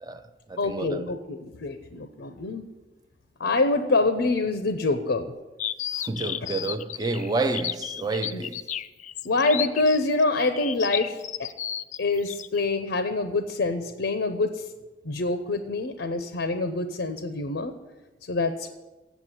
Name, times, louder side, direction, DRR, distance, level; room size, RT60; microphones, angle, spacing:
voice 1, 0.0-1.1 5.9-8.7, right 3 dB, 20° right, 0.4 m, -30 dB
voice 2, 0.6-2.7 3.4-5.3 6.4-6.5 8.3-8.4 9.2-11.5 12.0-14.6 15.0-17.7 18.2-18.7, left 3 dB, 75° left, 0.7 m, -26 dB
sound 1, 5.6-12.6, left 10 dB, 40° left, 0.3 m, -33 dB
8.1 x 7.3 x 7.4 m
head